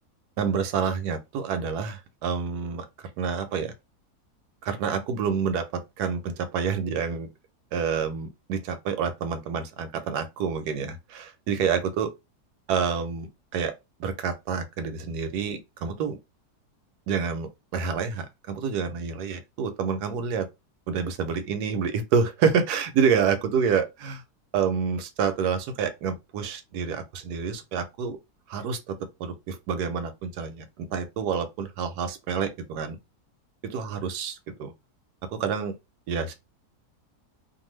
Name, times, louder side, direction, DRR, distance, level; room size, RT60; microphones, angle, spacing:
voice 1, 0.4-3.7 4.6-7.3 7.7-12.1 12.7-13.7 14.0-16.2 17.1-20.5 20.9-24.2 24.5-28.2 28.5-33.0 33.6-34.7 35.3-35.7 36.1-36.3, right 6 dB, 85° right, 1.1 m, -28 dB
2.6 x 2.5 x 3.1 m
omnidirectional pair, 1.7 m